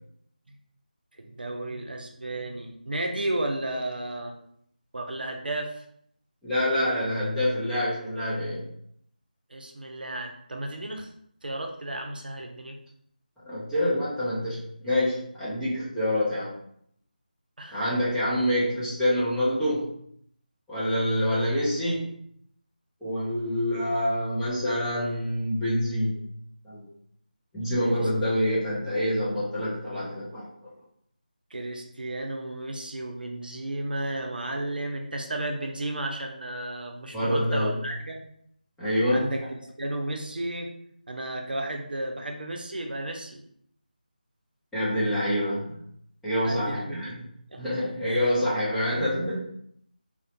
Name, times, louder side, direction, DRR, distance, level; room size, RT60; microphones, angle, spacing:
voice 1, 1.2-4.3 4.9-5.8 9.5-11.1 11.4-12.8 17.6-17.8 28.0-28.1 28.4-28.5 31.5-38.2 39.1-40.7 41.1-43.4 46.4-47.0 47.5-47.6 48.1-48.4, right 1 dB, 70° right, 2 dB, 0.5 m, -33 dB
voice 2, 6.4-8.7 13.5-16.5 17.7-19.9 20.7-22.1 23.0-26.2 26.6-26.9 27.5-30.5 37.1-37.8 38.8-39.3 44.7-45.8 46.2-47.2 47.6-49.4, equal, ahead, -13 dB, 0.3 m, -26 dB
2.4 x 2.1 x 2.8 m, 0.67 s
figure-of-eight pair, 165°, 5 cm